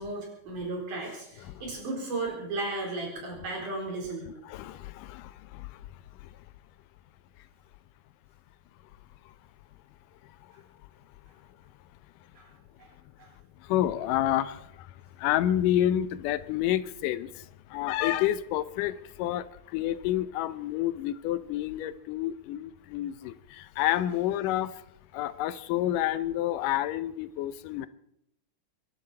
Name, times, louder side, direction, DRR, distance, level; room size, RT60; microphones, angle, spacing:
voice 1, 0.0-4.3 12.4-12.5 12.8-12.9 13.2-13.3, right 2 dB, 75° right, 5.6 m, -35 dB
voice 2, 4.5-5.8 6.2-6.3 10.4-10.5 13.6-24.8 25.1-27.9, left 12 dB, 85° left, 2.3 m, -29 dB
24.5 x 11.5 x 4.3 m
omnidirectional pair, 3.7 m